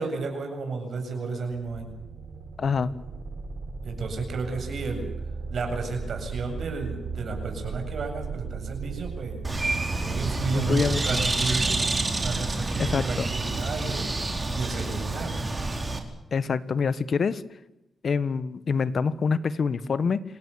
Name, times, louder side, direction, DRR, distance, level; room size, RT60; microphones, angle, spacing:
voice 1, 0.0-1.9 3.8-5.1 5.5-9.4 10.0-11.8 12.1-14.1 14.5-15.4, right 4 dB, 65° right, 4 dB, 7.9 m, -32 dB
sound 1, 1.5-14.1, right 5 dB, 80° right, 3.5 m, -37 dB
voice 2, 2.6-2.9 10.5-11.2 12.8-13.3 16.3-17.4 18.0-20.2, left 5 dB, 55° left, 15 dB, 1.4 m, -26 dB
Bird, 9.4-16.0, right 2 dB, 25° right, 4.3 m, -28 dB
28.0 x 17.5 x 8.5 m, 0.91 s
cardioid pair, 95°, 0 cm